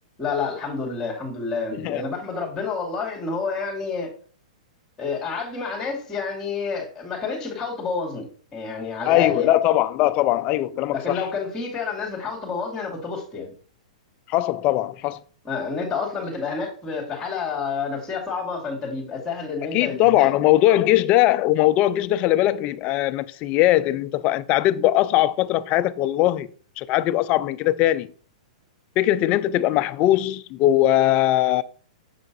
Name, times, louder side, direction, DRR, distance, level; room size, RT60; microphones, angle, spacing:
voice 1, 0.2-4.1 5.0-9.5 10.9-13.5 15.4-20.3, left 5 dB, 15° left, 2.3 m, -29 dB
voice 2, 9.1-11.2 14.3-15.2 19.7-26.5 26.8-28.1 29.0-31.6, left 14 dB, 35° left, 0.4 m, -20 dB
6.8 x 3.7 x 4.0 m
hypercardioid pair, 130°, 4 cm